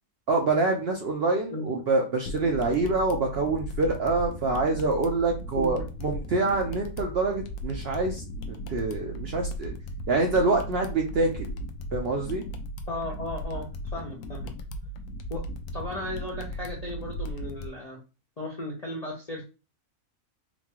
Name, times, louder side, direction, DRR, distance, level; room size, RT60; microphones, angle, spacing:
voice 1, 0.3-9.7 10.1-11.5 11.9-12.5, right 3 dB, 60° right, 1 dB, 0.6 m, -26 dB
sound 1, 2.3-17.7, equal, 80° left, 1.1 m, -37 dB
voice 2, 12.9-13.7 13.9-14.5 15.3-15.4 15.7-18.0 18.4-19.4, left 1 dB, 50° left, -3 dB, 0.4 m, -35 dB
4.1 x 2.3 x 2.9 m, 0.31 s
omnidirectional pair, 1.6 m